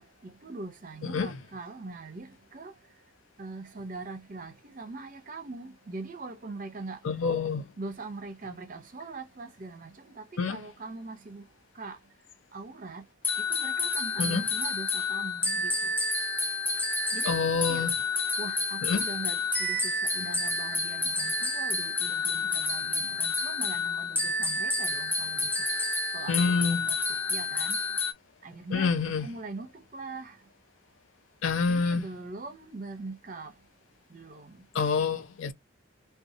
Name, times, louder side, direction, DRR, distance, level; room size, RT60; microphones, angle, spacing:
voice 1, 0.0-2.7 3.4-7.0 7.8-11.4 11.7-12.0 12.5-13.0 13.4-15.9 17.1-17.9 18.4-25.7 26.1-27.0 27.3-27.8 28.4-30.4 31.4-33.5 34.1-34.6, right 3 dB, 40° right, 0.6 m, -42 dB
voice 2, 1.0-1.3 7.0-7.7 10.4-10.6 14.2-14.5 17.3-17.9 18.8-19.0 26.3-26.8 28.7-29.3 31.4-32.0 34.7-35.5, left 5 dB, 75° left, 0.5 m, -27 dB
sound 1, 13.2-28.1, left 3 dB, 10° left, 0.4 m, -29 dB
2.6 x 2.3 x 2.6 m
head